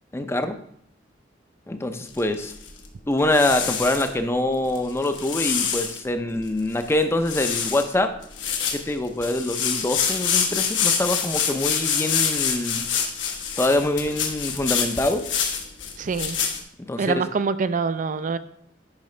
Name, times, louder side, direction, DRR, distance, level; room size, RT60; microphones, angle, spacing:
voice 1, 0.1-0.6 1.7-2.5 3.1-8.1 8.7-12.9 13.6-15.3 16.8-17.1, left 1 dB, 15° left, 8 dB, 0.5 m, -24 dB
sound 1, 2.1-2.9 3.3-4.1 4.8-6.0 6.5-6.6 6.7-7.0 7.2-7.9 8.2-16.6, left 7 dB, 85° left, 1.1 m, -26 dB
voice 2, 16.0-16.4 17.0-18.4, right 5 dB, 45° right, 13 dB, 0.4 m, -25 dB
10.5 x 4.8 x 3.2 m, 0.68 s
head